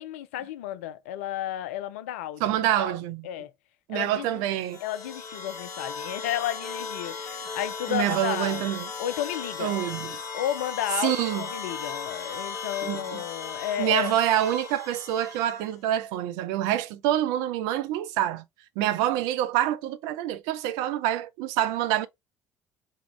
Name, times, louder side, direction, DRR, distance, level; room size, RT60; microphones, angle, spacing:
voice 1, 0.0-2.4 2.8-3.0 3.2-3.5 3.9-4.4 4.8-9.8 10.3-14.2, left 12 dB, 70° left, 0.4 m, -32 dB
voice 2, 2.4-3.3 3.9-4.8 7.9-8.9 9.6-10.1 11.0-11.5 12.8-13.2 13.8-18.4 18.8-22.1, right 12 dB, 65° right, 0.4 m, -26 dB
sound 1, 4.5-15.7, left 5 dB, 50° left, 1.0 m, -37 dB
3.6 x 2.3 x 3.0 m
figure-of-eight pair, 55°, 7 cm